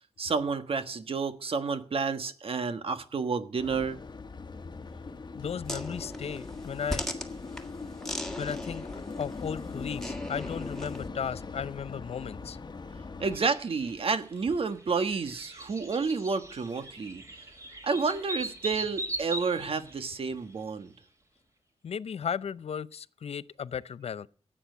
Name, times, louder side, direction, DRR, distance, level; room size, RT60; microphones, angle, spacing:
voice 1, 0.2-4.0 13.2-17.2 17.8-20.9, right 4 dB, 60° right, 1.5 m, -30 dB
sound 1, 3.6-13.4, left 4 dB, 40° left, 1.3 m, -40 dB
voice 2, 5.3-7.0 8.4-8.8 9.2-12.6 21.8-24.3, left 7 dB, 65° left, 0.6 m, -35 dB
sound 2, 5.7-11.1, left 1 dB, 5° left, 1.8 m, -39 dB
sound 3, 13.3-20.6, right 1 dB, 30° right, 2.9 m, -40 dB
15.5 x 8.9 x 7.9 m
wide cardioid pair, 140°, 11 cm